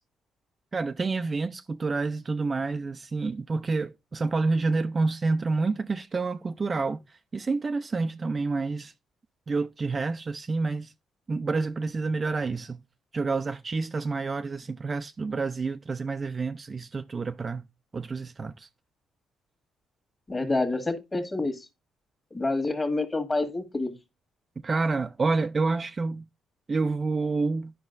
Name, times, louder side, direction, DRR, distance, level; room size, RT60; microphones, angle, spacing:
voice 1, 0.7-7.0 7.3-8.9 9.5-10.9 11.3-12.8 13.1-17.6 17.9-18.7 24.6-26.2 26.7-27.7, right 3 dB, 35° right, 0.4 m, -28 dB
voice 2, 20.3-21.6 22.3-23.9, left 2 dB, 25° left, 1.6 m, -28 dB
10.5 x 5.4 x 2.5 m
cardioid pair, 90°, 0 cm